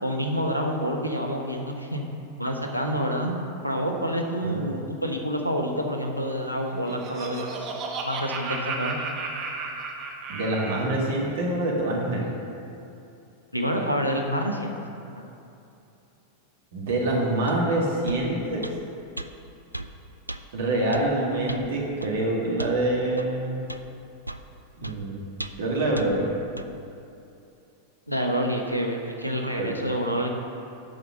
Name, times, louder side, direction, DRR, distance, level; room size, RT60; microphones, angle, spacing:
voice 1, 0.0-2.0 2.4-3.3 3.6-7.7 8.0-9.0 13.5-14.7 15.1-15.3 28.1-30.3, equal, 90° left, 2 dB, 1.0 m, -28 dB
Laughter, 6.6-11.0, right 4 dB, 35° right, 1.1 m, -33 dB
voice 2, 10.3-12.3 16.7-18.7 20.5-23.7 24.8-25.2 25.6-26.3 29.6-29.8, right 1 dB, 60° right, -2 dB, 2.1 m, -26 dB
sound 1, 17.5-17.6 18.1-18.2 18.6-18.8 19.2-19.3 19.7-19.9 20.3-20.4 20.9-21.1 21.5-21.7 22.0-22.1 22.6-22.8 23.2-23.3 23.7-23.8 24.3-24.5 24.8-25.0 25.4-25.7 26.0-26.1 26.6-26.7, right 1 dB, 90° right, 0.3 m, -35 dB
9.2 x 5.9 x 6.4 m, 2.7 s
figure-of-eight pair, 90°, 0 cm